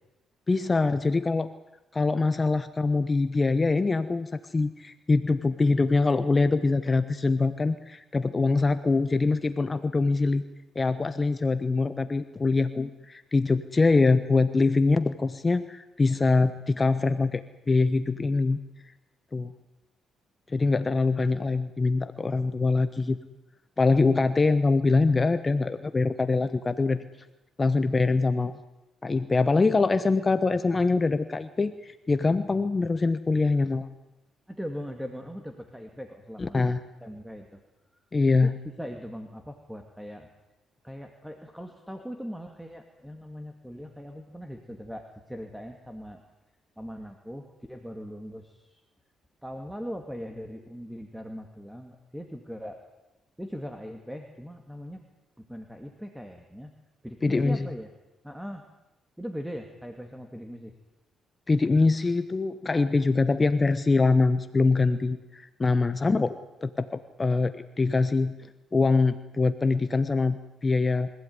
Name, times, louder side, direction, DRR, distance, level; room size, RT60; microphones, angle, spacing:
voice 1, 0.5-1.5 1.9-10.4 10.7-18.6 19.3-19.5 20.5-23.2 23.8-27.0 27.6-28.6 29.0-33.9 36.4-36.8 38.1-38.5 57.2-57.6 61.5-71.1, left 3 dB, 25° left, 11 dB, 1.1 m, -24 dB
voice 2, 34.5-37.6 38.3-40.3 40.8-46.2 46.8-48.8 49.4-52.8 53.4-55.0 55.4-56.7 57.0-57.9 58.2-58.7 59.2-60.7, equal, 5° right, 5 dB, 2.3 m, -40 dB
25.0 x 15.5 x 9.6 m, 0.99 s
cardioid pair, 90°, 0 cm